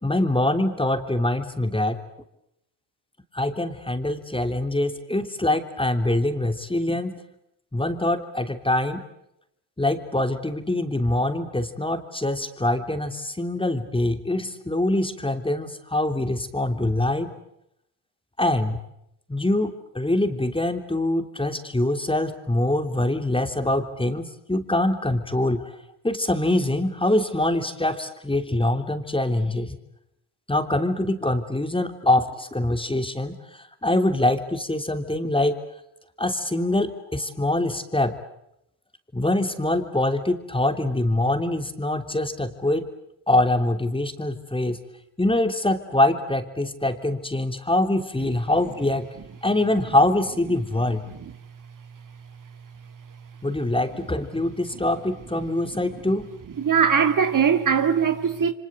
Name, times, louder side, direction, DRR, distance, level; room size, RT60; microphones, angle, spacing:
voice 1, 0.0-2.0 3.3-7.2 7.7-9.0 9.8-17.4 18.4-18.8 19.3-25.7 26.0-29.8 30.5-35.6 36.2-38.2 39.1-42.9 43.3-44.8 45.2-49.0 49.4-51.1 53.4-56.3, left 1 dB, 10° left, 3.2 m, -24 dB
voice 2, 56.6-58.5, right 7 dB, 40° right, 2.2 m, -21 dB
28.5 x 25.0 x 7.9 m
hypercardioid pair, 60°, 46 cm